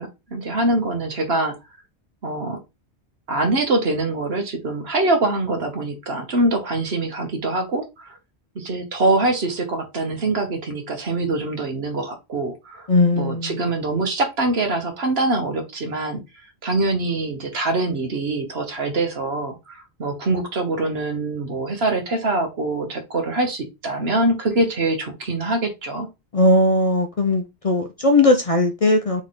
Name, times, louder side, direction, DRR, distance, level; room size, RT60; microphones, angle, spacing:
voice 1, 0.0-1.5 2.2-2.6 3.3-8.2 8.5-12.9 13.1-16.2 16.6-26.1, right 2 dB, 65° right, 1.3 m, -24 dB
voice 2, 12.9-13.5 26.3-29.2, left 2 dB, 40° left, 0.6 m, -18 dB
3.5 x 3.1 x 4.2 m
omnidirectional pair, 1.1 m